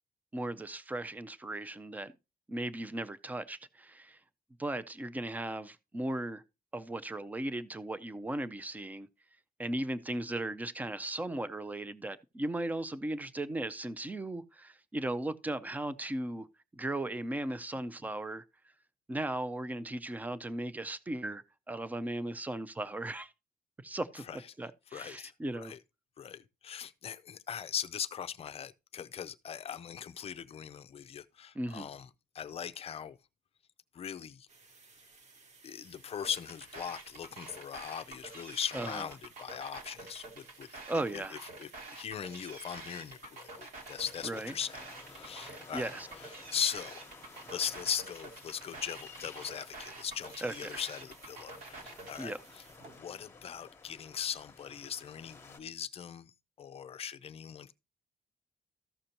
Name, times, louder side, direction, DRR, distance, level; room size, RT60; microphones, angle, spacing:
voice 1, 0.3-2.1 2.5-4.2 4.6-6.4 6.7-9.1 9.6-16.5 16.7-18.4 19.1-23.3 23.8-25.7 31.5-31.9 38.7-39.1 40.9-41.4 44.2-44.5 45.4-46.1 50.4-50.8 52.2-52.4, right 1 dB, 10° right, 0.5 m, -37 dB
voice 2, 24.9-25.8 26.2-32.1 32.3-33.2 33.9-34.5 35.6-44.8 45.1-45.9 46.2-47.0 47.5-52.4 52.9-57.7, left 8 dB, 40° left, 0.5 m, -40 dB
sound 1, 34.5-53.0, right 3 dB, 50° right, 1.2 m, -59 dB
sound 2, 36.2-52.2, right 2 dB, 70° right, 2.3 m, -48 dB
sound 3, 43.8-55.6, left 4 dB, 15° left, 1.1 m, -54 dB
14.0 x 6.6 x 2.9 m
wide cardioid pair, 165°, 15 cm